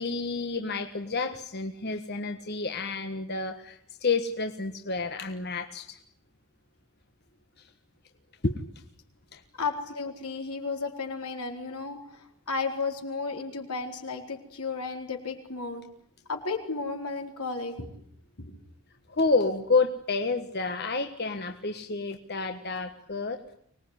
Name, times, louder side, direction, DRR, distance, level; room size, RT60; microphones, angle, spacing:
voice 1, 0.0-6.0 7.6-7.7 8.4-8.5 9.3-9.4 19.1-23.5, left 3 dB, 45° left, 6 dB, 1.4 m, -29 dB
voice 2, 9.6-15.8 16.3-17.9 18.4-18.6, left 4 dB, 85° left, 3 dB, 4.3 m, -33 dB
25.0 x 20.0 x 9.9 m, 0.69 s
head